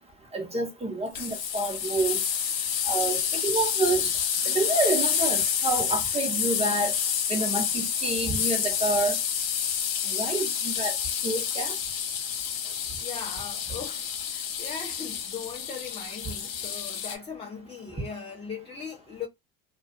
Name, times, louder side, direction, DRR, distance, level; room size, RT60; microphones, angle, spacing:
voice 1, 0.3-2.2 2.9-4.1 4.4-7.0 7.3-9.2 10.1-10.9 11.2-11.8, right 2 dB, 20° right, 1.0 m, -28 dB
sound 1, 1.1-17.1, left 8 dB, 80° left, 1.0 m, -29 dB
voice 2, 13.0-19.3, left 6 dB, 20° left, 0.7 m, -39 dB
2.4 x 2.4 x 2.3 m
hypercardioid pair, 75°, 30 cm